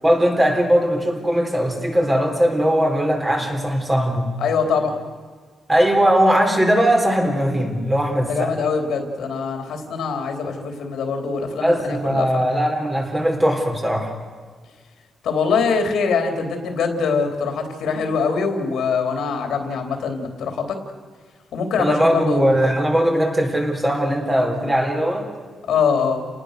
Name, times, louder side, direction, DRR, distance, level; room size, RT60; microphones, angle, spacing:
voice 1, 0.0-4.3 5.7-8.6 11.6-14.1 21.8-25.3, equal, 15° right, 1 dB, 4.3 m, -19 dB
voice 2, 4.4-4.9 8.2-12.4 15.2-20.8 21.5-22.6 25.7-26.2, left 5 dB, 80° left, 5 dB, 3.5 m, -23 dB
29.5 x 19.5 x 6.7 m, 1.5 s
cardioid pair, 125°, 0 cm